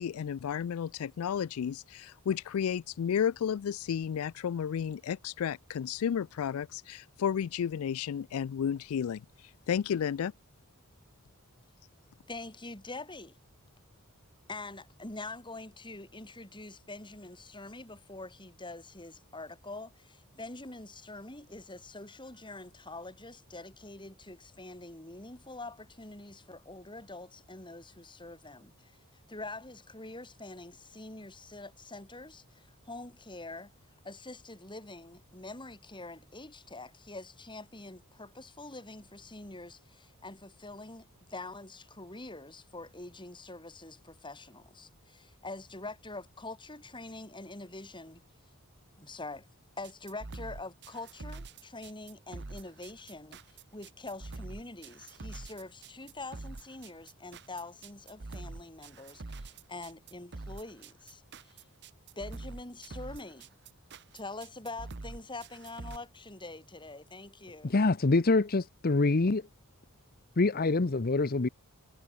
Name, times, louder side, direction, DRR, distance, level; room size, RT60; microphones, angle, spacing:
voice 1, 0.0-10.3, left 8 dB, 70° left, 0.3 m, -32 dB
voice 2, 12.3-13.4 14.5-29.0 29.3-33.7 34.0-48.2 49.0-49.5 49.8-61.6 62.2-63.5 64.1-67.7, left 2 dB, 20° left, 5.1 m, -45 dB
sound 1, 49.8-66.0, right 3 dB, 50° right, 1.0 m, -44 dB
voice 3, 67.6-69.5 70.4-71.5, left 3 dB, 40° left, 0.7 m, -25 dB
head